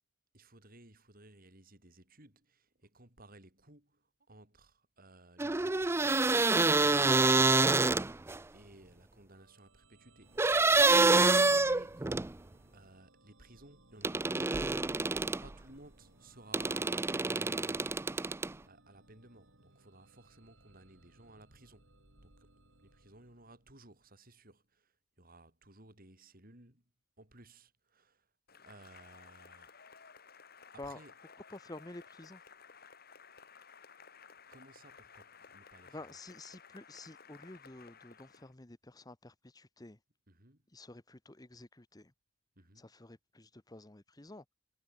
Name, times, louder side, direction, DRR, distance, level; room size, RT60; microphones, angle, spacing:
voice 1, 0.3-7.9 8.5-10.7 11.0-12.3 12.7-14.7 15.4-18.2 18.6-21.9 22.2-22.5 22.8-26.8 27.2-28.3 28.6-29.7 30.7-31.1 34.5-36.2 40.3-40.6 42.6-42.9, right 2 dB, 45° right, 6.5 m, -57 dB
sound 1, 5.4-8.4 10.4-12.3 14.0-15.5 16.5-18.5, right 3 dB, 10° right, 0.4 m, -27 dB
sound 2, 9.3-24.0, right 1 dB, 65° right, 5.0 m, -65 dB
Cheering / Applause, 28.5-38.5, left 6 dB, 45° left, 5.7 m, -56 dB
voice 2, 31.5-32.4 35.9-40.0 40.7-42.1 42.8-44.4, left 2 dB, 20° left, 1.0 m, -50 dB
head